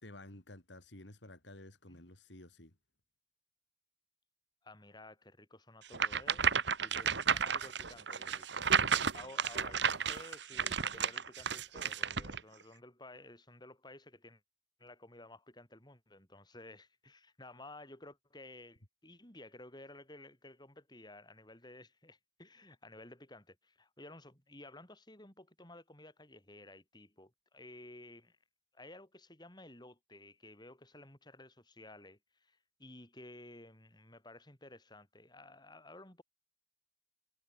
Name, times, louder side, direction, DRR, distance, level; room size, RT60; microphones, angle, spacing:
voice 1, 0.0-2.7, left 1 dB, 65° left, 4.0 m, -52 dB
voice 2, 4.6-6.4 6.8-8.6 9.1-14.4 14.8-28.4 28.7-36.2, left 2 dB, 20° left, 7.3 m, -54 dB
sound 1, 5.9-12.4, right 6 dB, 60° right, 1.4 m, -32 dB
head